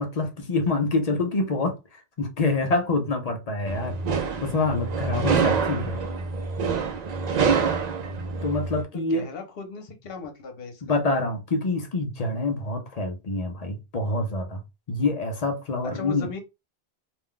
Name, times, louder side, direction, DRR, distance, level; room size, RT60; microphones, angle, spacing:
voice 1, 0.0-1.7 2.2-3.9 4.4-6.0 8.4-9.2 10.8-14.6 14.9-16.3, left 2 dB, 45° left, 0.6 m, -26 dB
sound 1, 3.7-8.8, right 5 dB, 55° right, 0.5 m, -26 dB
voice 2, 8.9-11.0 15.9-16.4, left 4 dB, 65° left, 1.0 m, -38 dB
2.5 x 2.2 x 3.7 m
omnidirectional pair, 1.1 m